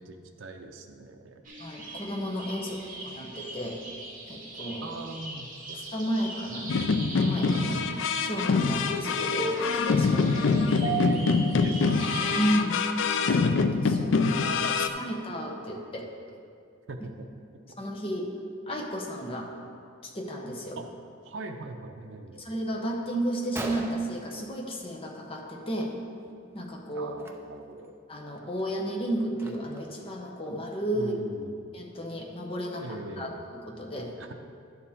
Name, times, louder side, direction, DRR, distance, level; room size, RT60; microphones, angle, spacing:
voice 1, 0.1-1.4 2.6-2.9 4.8-5.5 6.6-7.0 7.5-7.8 8.6-8.8 10.8-11.3 11.5-12.4 14.0-15.1 16.9-17.3 20.8-20.9 21.2-22.4 26.9-27.9 30.9-31.6 32.7-33.4 34.2-34.3, right 2 dB, 75° right, 3 dB, 0.6 m, -42 dB
sound 1, 1.4-12.5, right 2 dB, 40° right, 2.0 m, -37 dB
voice 2, 1.6-3.8 4.3-5.0 5.7-7.8 8.2-10.2 12.3-12.8 13.2-16.1 17.8-18.3 18.7-19.5 20.0-20.8 22.4-25.9 26.5-27.4 28.1-31.1 31.7-32.8 33.2-34.1, equal, 30° left, 0 dB, 1.0 m, -33 dB
sound 2, 6.7-14.9, left 4 dB, 70° left, 0.4 m, -25 dB
Gunshot gunfire, 23.6-25.2 25.5-25.8 26.1-26.3 27.1-27.3 27.8-27.9 28.4-30.0, right 1 dB, 10° right, 0.6 m, -40 dB
11.0 x 6.9 x 3.6 m, 2.3 s
head